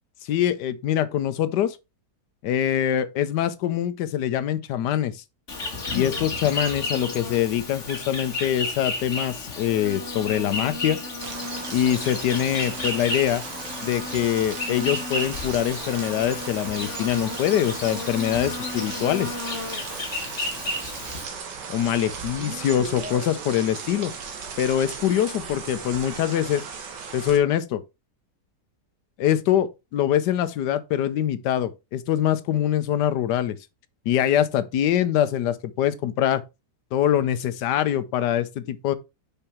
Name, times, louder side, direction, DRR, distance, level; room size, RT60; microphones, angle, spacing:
voice 1, 0.2-1.8 2.4-5.2 5.9-11.0 11.7-13.4 13.8-19.3 21.7-24.1 24.6-26.6 27.1-27.8 29.2-33.6 34.1-36.4 36.9-38.9, left 10 dB, 80° left, 1.3 m, -24 dB
Insect, 5.5-21.2, left 2 dB, 45° left, 2.0 m, -32 dB
sound 1, 11.2-27.4, right 5 dB, 80° right, 1.9 m, -37 dB
5.7 x 5.4 x 4.3 m
omnidirectional pair, 1.8 m